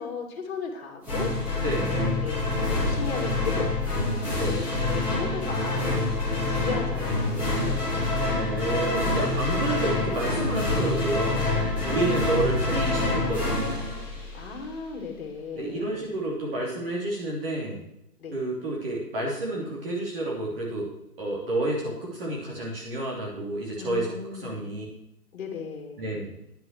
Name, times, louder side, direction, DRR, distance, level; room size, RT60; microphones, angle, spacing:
voice 1, 0.0-1.6 2.2-3.7 4.5-5.9 6.3-8.1 11.8-12.1 12.5-12.7 14.3-16.0 18.2-18.4 23.8-24.7 25.3-26.1, left 6 dB, 40° left, 2 dB, 2.8 m, -36 dB
sound 1, 1.0-14.7, left 2 dB, 5° right, 2.7 m, -26 dB
voice 2, 1.6-2.0 4.4-4.6 8.3-11.5 11.8-13.6 15.5-17.9 18.3-20.9 21.2-24.8 26.0-26.3, right 1 dB, 35° right, -3 dB, 3.1 m, -30 dB
10.0 x 7.7 x 6.5 m, 0.82 s
figure-of-eight pair, 155°, 48 cm